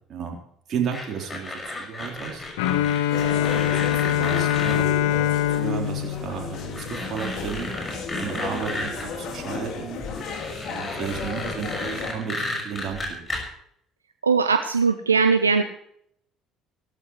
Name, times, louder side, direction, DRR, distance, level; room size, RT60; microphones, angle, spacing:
voice 1, 0.7-2.5 3.1-7.7 8.2-10.0 10.7-13.3, right 7 dB, 50° right, 1 dB, 3.8 m, -33 dB
sound 1, 0.9-4.8 6.0-6.1 6.5-9.1 10.0-13.4, left 2 dB, 25° left, 6.0 m, -34 dB
Bowed string instrument, 2.6-7.4, left 11 dB, 70° left, 1.0 m, -24 dB
sound 2, 3.1-12.1, left 4 dB, 55° left, 2.7 m, -34 dB
voice 2, 14.2-15.6, right 5 dB, 90° right, 9 dB, 0.5 m, -20 dB
17.5 x 14.0 x 3.2 m, 0.69 s
figure-of-eight pair, 55°, 0 cm